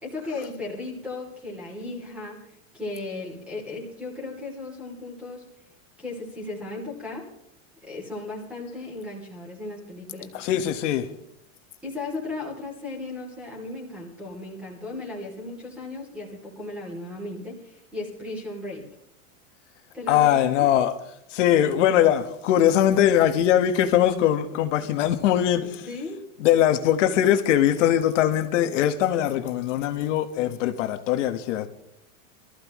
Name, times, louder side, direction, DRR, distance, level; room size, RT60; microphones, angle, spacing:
voice 1, 0.0-2.5 2.7-5.4 6.0-7.2 7.9-10.5 11.8-18.8 19.9-20.7 25.6-26.2, left 2 dB, 5° right, 2.9 m, -36 dB
voice 2, 10.3-11.1 20.1-20.9 21.3-25.7 26.4-31.7, left 11 dB, 60° left, 1.5 m, -21 dB
23.0 x 14.5 x 3.1 m
supercardioid pair, 175°, 40 cm